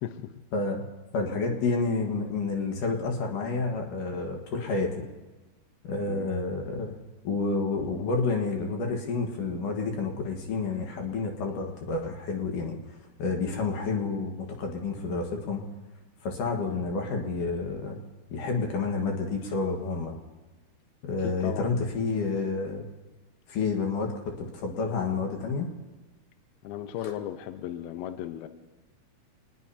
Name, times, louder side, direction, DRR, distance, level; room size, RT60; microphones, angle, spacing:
voice 1, 0.0-0.4 6.1-6.3 21.2-21.7 26.6-28.5, left 11 dB, 75° left, 9 dB, 2.6 m, -36 dB
voice 2, 0.5-0.8 1.1-5.0 5.8-7.0 7.2-15.6 16.2-18.0 18.3-20.1 21.1-22.8 23.5-25.7, left 4 dB, 60° left, 2 dB, 2.7 m, -29 dB
26.0 x 20.0 x 2.8 m, 1.2 s
omnidirectional pair, 4.7 m